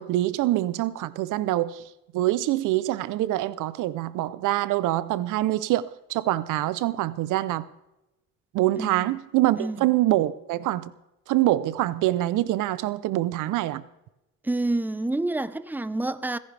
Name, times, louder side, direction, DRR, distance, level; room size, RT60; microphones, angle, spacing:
voice 1, 0.0-1.8 2.1-7.7 8.5-10.9 11.3-13.8, right 15 dB, 90° right, 0.6 m, -25 dB
voice 2, 8.8-9.1 9.6-9.8 14.4-16.4, right 2 dB, 5° right, 0.7 m, -28 dB
28.0 x 10.5 x 3.3 m
cardioid pair, 90°, 30 cm